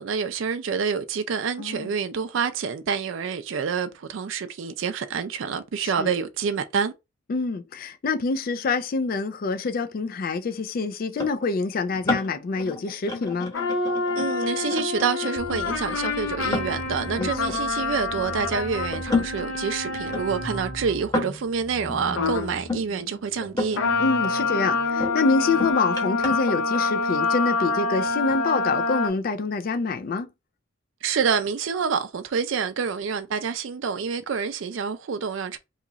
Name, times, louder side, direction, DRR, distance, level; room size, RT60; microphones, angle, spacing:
voice 1, 0.0-6.9 14.1-23.8 31.0-35.6, right 6 dB, 65° right, 0.4 m, -27 dB
voice 2, 7.3-13.5 17.2-17.6 24.0-30.3, left 4 dB, 45° left, 0.3 m, -26 dB
sound 1, 11.2-18.4 18.9-22.8 23.4-23.9 24.2-27.4 28.1-28.6, left 3 dB, 20° left, 1.0 m, -32 dB
sound 2, 13.5-21.0 22.1-22.5 23.7-29.1, left 3 dB, 80° left, 0.7 m, -27 dB
sound 3, 15.4-25.7, equal, 10° right, 0.6 m, -40 dB
2.9 x 2.4 x 3.9 m
head